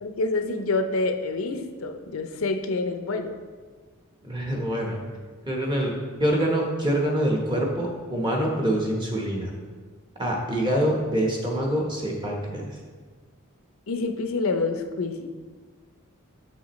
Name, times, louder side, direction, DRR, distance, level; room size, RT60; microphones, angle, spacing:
voice 1, 0.0-3.3 13.9-15.3, left 3 dB, 80° left, 6 dB, 0.6 m, -27 dB
voice 2, 4.2-5.0 5.5-5.9 6.2-9.5 10.2-12.8, right 1 dB, 20° right, -1 dB, 1.0 m, -25 dB
7.2 x 6.8 x 3.1 m, 1.5 s
head